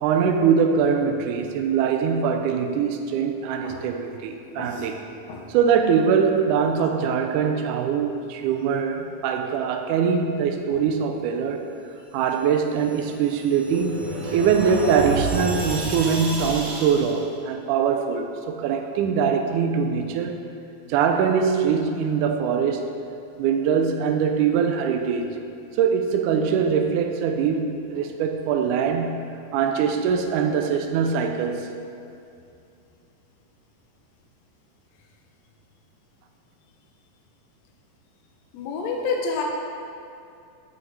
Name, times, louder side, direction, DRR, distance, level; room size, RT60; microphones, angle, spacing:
voice 1, 0.0-5.0 5.5-11.7 12.1-20.5 20.9-23.0 23.4-25.3 25.8-31.7, right 6 dB, 80° right, 4 dB, 1.9 m, -23 dB
sound 1, 12.7-17.2, right 2 dB, 60° right, 1.5 m, -31 dB
voice 2, 38.5-39.4, left 4 dB, 75° left, 0 dB, 1.6 m, -29 dB
9.3 x 8.7 x 3.4 m, 2.6 s
omnidirectional pair, 4.0 m